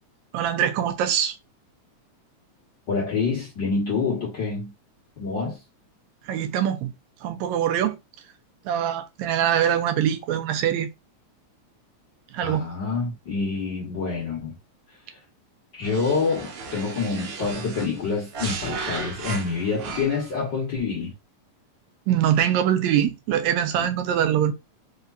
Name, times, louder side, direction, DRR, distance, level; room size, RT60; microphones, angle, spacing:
voice 1, 0.3-1.3 6.3-6.9 7.2-8.0 8.7-10.9 12.3-12.6 22.1-24.5, right 10 dB, 80° right, 1.9 m, -23 dB
voice 2, 2.9-4.7 5.2-5.6 12.4-14.5 15.1-15.2 15.7-21.1 23.8-23.9, left 4 dB, 50° left, 1.5 m, -27 dB
sound 1, 15.8-20.4, right 4 dB, 60° right, 1.6 m, -35 dB
4.8 x 3.2 x 2.6 m
omnidirectional pair, 3.4 m